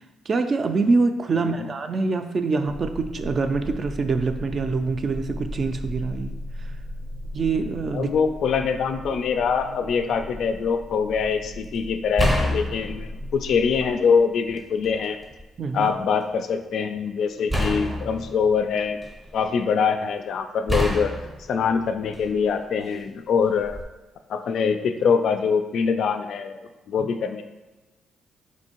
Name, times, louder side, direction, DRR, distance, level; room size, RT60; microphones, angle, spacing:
voice 1, 0.3-6.4 7.3-8.1 15.6-15.9 27.0-27.1, right 4 dB, 45° right, 7 dB, 0.3 m, -25 dB
voice 2, 1.3-1.7 7.9-15.2 15.7-19.0 19.3-21.1 21.5-23.8 24.3-27.4, left 6 dB, 70° left, 8 dB, 0.3 m, -24 dB
sound 1, 2.7-13.9, equal, 85° right, 0.7 m, -37 dB
sound 2, 10.6-10.7 12.2-14.0 14.5-15.4 17.5-19.4 20.7-22.5 23.6-23.8, equal, 5° right, 0.6 m, -28 dB
4.3 x 2.6 x 2.9 m, 1.1 s
cardioid pair, 90°, 0 cm